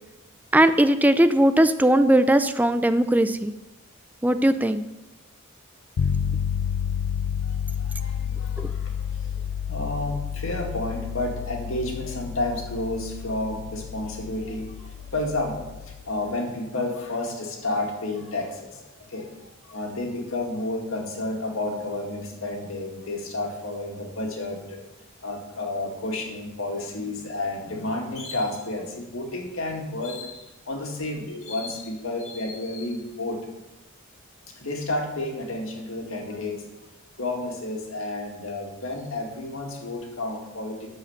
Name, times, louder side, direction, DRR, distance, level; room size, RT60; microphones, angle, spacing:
voice 1, 0.5-3.5 4.2-4.8 8.6-8.7, right 1 dB, 10° right, 10 dB, 0.4 m, -19 dB
sound 1, 6.0-16.1, left 8 dB, 90° left, 0.4 m, -30 dB
voice 2, 7.4-9.4 9.7-24.8 25.2-33.4 34.5-36.6 37.2-40.9, left 2 dB, 70° left, 1 dB, 2.1 m, -31 dB
12.0 x 5.0 x 7.2 m, 1.0 s
head